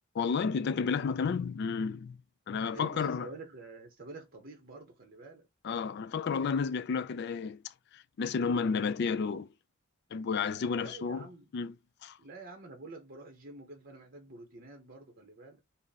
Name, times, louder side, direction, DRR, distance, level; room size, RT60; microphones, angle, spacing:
voice 1, 0.1-2.2 2.5-3.3 5.6-7.6 7.9-9.5 10.1-11.3 11.5-11.8 12.0-12.2, left 5 dB, 50° left, 0.3 m, -31 dB
voice 2, 2.7-5.4 10.8-11.5 12.2-15.6, right 2 dB, 45° right, 0.7 m, -48 dB
3.6 x 2.0 x 4.0 m
head